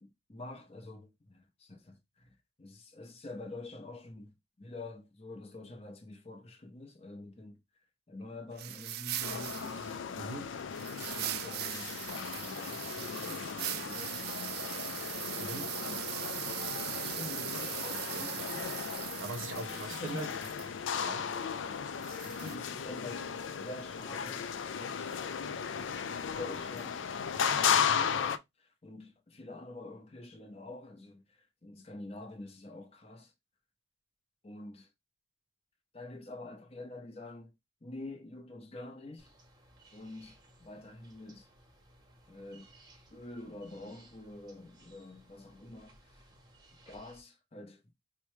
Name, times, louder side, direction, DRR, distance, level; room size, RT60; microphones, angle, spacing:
voice 1, 0.0-7.6 8.1-9.8 11.1-11.9 12.2-14.5 15.7-16.0 16.8-18.4 19.6-20.4 22.2-23.3 23.6-25.1 25.8-25.9 26.3-27.1 27.4-33.3 34.4-34.9 35.9-37.5 37.8-39.3 39.9-41.5 42.3-42.7 43.1-46.3 46.9-47.8, left 2 dB, 30° left, 0.7 m, -47 dB
sound 1, 8.6-10.0 10.7-20.7 22.0-22.6, right 13 dB, 50° right, 0.3 m, -40 dB
sound 2, 9.2-28.4, left 7 dB, 70° left, 0.4 m, -35 dB
voice 2, 10.1-10.7 15.4-15.8 18.1-20.3 21.0-21.4, right 2 dB, 75° right, 0.7 m, -43 dB
sound 3, 39.2-47.2, right 1 dB, 20° right, 0.8 m, -60 dB
4.7 x 2.1 x 3.1 m
head